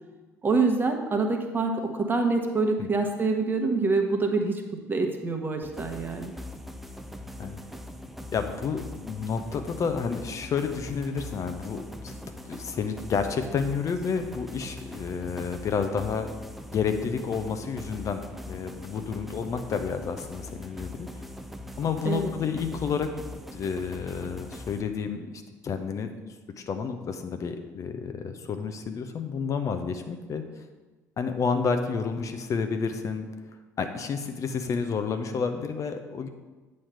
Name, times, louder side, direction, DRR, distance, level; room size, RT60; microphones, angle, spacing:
voice 1, 0.4-4.6 4.9-6.3 22.0-22.3, right 3 dB, 25° right, 3 dB, 1.1 m, -26 dB
sound 1, 5.6-24.8, left 1 dB, ahead, 0.6 m, -41 dB
voice 2, 8.3-12.2 12.4-16.3 16.7-21.2 21.8-23.1 23.5-25.3 25.6-26.1 26.6-30.4 31.2-33.3 33.8-36.3, left 5 dB, 40° left, 7 dB, 0.6 m, -30 dB
8.5 x 3.2 x 5.6 m, 1.2 s
figure-of-eight pair, 55°, 9 cm